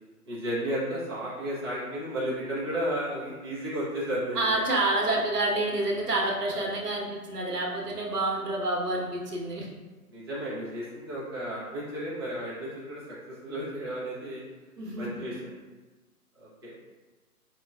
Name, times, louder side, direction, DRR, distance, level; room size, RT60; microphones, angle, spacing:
voice 1, 0.3-4.6 6.5-6.7 10.1-13.0 13.3-14.4 15.0-15.3 16.4-16.8, equal, 20° right, -9 dB, 0.4 m, -33 dB
voice 2, 4.3-9.7 14.8-15.1, right 2 dB, 90° right, -1 dB, 0.9 m, -28 dB
4.8 x 2.1 x 2.3 m, 1.3 s
figure-of-eight pair, 125°, 46 cm